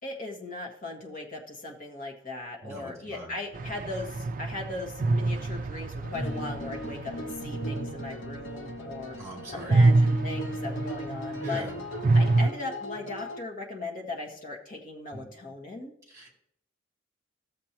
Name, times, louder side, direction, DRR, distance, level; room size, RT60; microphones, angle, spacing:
voice 1, 0.0-9.1 9.5-11.6 12.1-15.9, left 2 dB, 45° left, 0 dB, 1.6 m, -38 dB
voice 2, 2.6-3.3 6.1-6.5 9.2-9.9 11.4-11.8 15.1-15.3 16.1-16.3, equal, 15° right, -3 dB, 2.9 m, -39 dB
sound 1, 3.5-9.2 9.5-12.5, right 2 dB, 40° right, 0.4 m, -27 dB
sound 2, 6.0-13.4, equal, 75° left, 1.0 m, -38 dB
14.0 x 7.4 x 3.0 m, 0.73 s
head